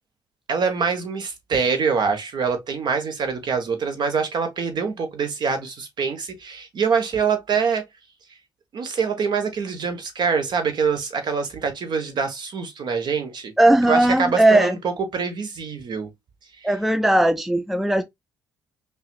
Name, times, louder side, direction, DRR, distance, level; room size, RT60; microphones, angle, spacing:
voice 1, 0.5-7.8 8.7-13.5 13.9-16.1, right 5 dB, 50° right, 1.2 m, -24 dB
voice 2, 13.6-14.8 16.6-18.0, right 1 dB, ahead, 0.4 m, -18 dB
5.5 x 2.4 x 2.3 m
figure-of-eight pair, 45°, 9 cm